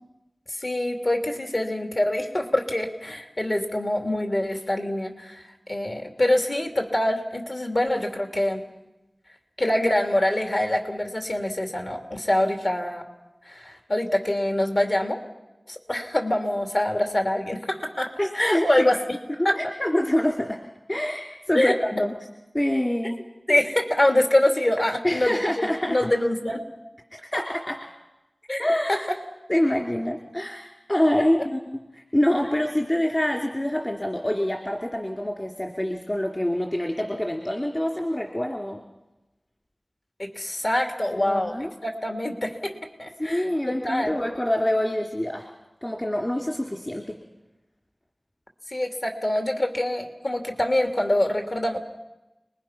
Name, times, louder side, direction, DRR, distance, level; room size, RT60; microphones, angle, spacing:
voice 1, 0.5-8.6 9.6-13.0 13.4-15.2 15.7-18.1 18.3-19.0 19.4-19.6 21.5-21.7 23.0-23.2 23.5-26.6 28.5-28.6 28.9-29.0 40.2-41.5 41.8-44.2 48.7-51.8, left 1 dB, 55° left, 4 dB, 2.7 m, -25 dB
voice 2, 18.2-18.9 19.5-20.6 20.9-22.1 22.5-23.2 25.0-26.0 27.3-27.8 28.6-29.1 29.5-38.8 41.1-41.7 43.2-45.5 45.8-47.2, left 1 dB, 25° left, 1 dB, 2.9 m, -26 dB
30.0 x 21.5 x 5.9 m, 1.0 s
wide cardioid pair, 60°, 0 cm